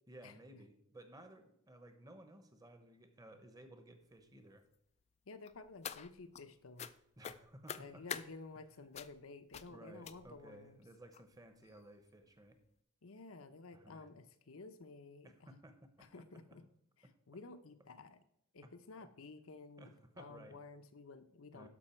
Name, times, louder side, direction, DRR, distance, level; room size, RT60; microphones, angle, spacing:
voice 1, 0.1-4.6 7.2-8.0 8.8-8.9 9.7-12.6 13.7-14.1 15.2-16.1 18.6-18.7 19.8-20.6 21.5-21.7, right 1 dB, 15° right, 7 dB, 0.9 m, -57 dB
voice 2, 5.3-6.9 7.8-10.8 13.0-15.6 16.0-16.6 17.3-18.2 18.5-21.7, left 3 dB, 75° left, 10 dB, 0.8 m, -53 dB
sound 1, 5.5-6.4 6.8-6.9 7.2-8.3 8.9-9.2 9.5-9.7 10.0-10.5 11.1-11.2 11.6-11.8 12.1-12.2, left 8 dB, 30° left, 0.3 m, -45 dB
12.5 x 5.5 x 4.4 m, 0.76 s
head